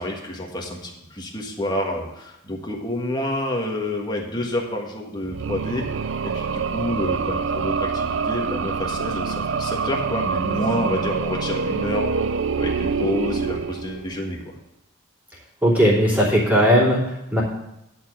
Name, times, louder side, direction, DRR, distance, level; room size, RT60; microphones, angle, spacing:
voice 1, 0.0-5.8 6.2-14.5, left 1 dB, 20° left, 0 dB, 1.5 m, -28 dB
sound 1, 5.2-14.3, right 5 dB, 60° right, 0.5 m, -26 dB
voice 2, 15.6-17.4, equal, 10° right, -7 dB, 3.0 m, -18 dB
10.5 x 4.5 x 7.6 m, 0.87 s
head